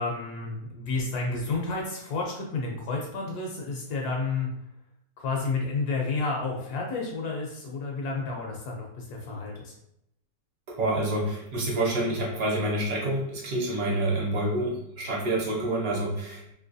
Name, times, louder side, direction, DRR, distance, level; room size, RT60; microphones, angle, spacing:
voice 1, 0.0-4.5 5.2-9.7, left 3 dB, 70° left, -1 dB, 1.1 m, -31 dB
voice 2, 10.7-16.5, right 1 dB, 60° right, -3 dB, 1.1 m, -28 dB
3.1 x 2.8 x 2.6 m, 0.78 s
omnidirectional pair, 2.0 m